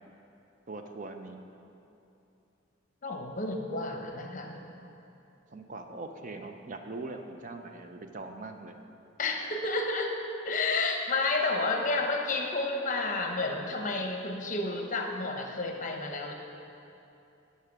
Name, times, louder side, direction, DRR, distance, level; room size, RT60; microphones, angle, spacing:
voice 1, 0.7-1.4 5.5-8.8, right 3 dB, 40° right, 5 dB, 0.5 m, -41 dB
voice 2, 3.0-4.6 9.2-10.1 10.4-16.3, left 3 dB, 40° left, 3 dB, 0.8 m, -31 dB
10.0 x 5.6 x 6.0 m, 2.8 s
head